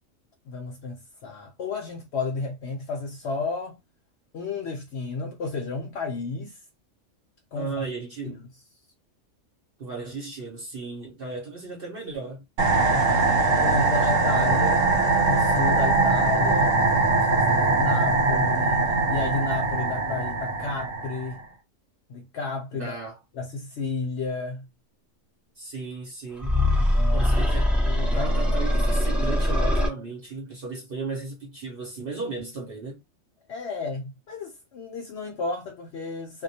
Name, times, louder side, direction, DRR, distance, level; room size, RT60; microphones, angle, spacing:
voice 1, 0.5-3.8 4.3-6.6 7.5-7.8 8.2-8.5 12.7-14.9 15.3-21.4 22.1-23.0 23.3-24.7 26.8-27.3 27.8-28.5 33.5-36.4, left 4 dB, 65° left, 0.8 m, -32 dB
voice 2, 7.5-8.4 9.8-12.4 22.7-23.2 25.6-26.5 27.1-27.7 28.1-33.0, right 3 dB, 55° right, 0.8 m, -35 dB
sound 1, 12.6-21.4, right 3 dB, 80° right, 1.1 m, -22 dB
sound 2, 26.4-29.9, left 1 dB, ahead, 0.3 m, -22 dB
2.3 x 2.1 x 2.7 m
omnidirectional pair, 1.3 m